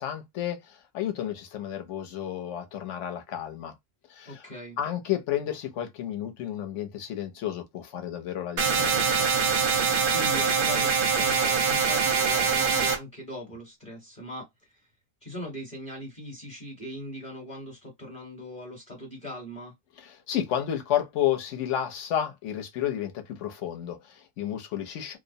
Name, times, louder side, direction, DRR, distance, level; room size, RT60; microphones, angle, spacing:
voice 1, 0.0-3.7 4.1-4.4 4.8-9.3 20.0-25.2, left 11 dB, 65° left, 0.9 m, -31 dB
voice 2, 4.2-4.8 10.1-14.9 15.2-19.7, equal, 30° left, 0.9 m, -40 dB
sound 1, 8.6-13.0, right 5 dB, 55° right, 0.6 m, -24 dB
2.5 x 2.0 x 2.6 m
omnidirectional pair, 1.5 m